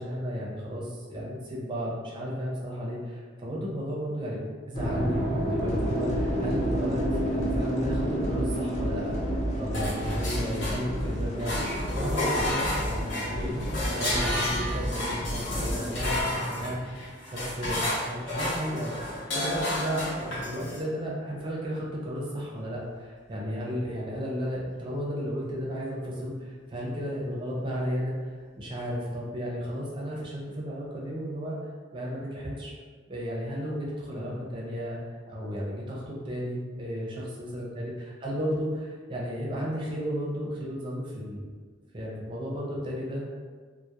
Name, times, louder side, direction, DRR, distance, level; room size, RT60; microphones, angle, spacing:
voice 1, 0.0-4.4 4.7-19.0 19.3-28.1 28.6-31.6 31.9-32.7 33.1-35.0 35.3-37.9 38.2-41.5 41.9-43.4, equal, 25° right, -4 dB, 0.5 m, -34 dB
sound 1, 4.7-14.9, right 1 dB, 20° left, 0.8 m, -32 dB
sound 2, 5.6-16.2, equal, 35° left, 0.3 m, -33 dB
sound 3, 9.7-11.1 11.4-20.8, left 1 dB, 75° left, 0.8 m, -31 dB
2.2 x 2.0 x 2.8 m, 1.5 s
head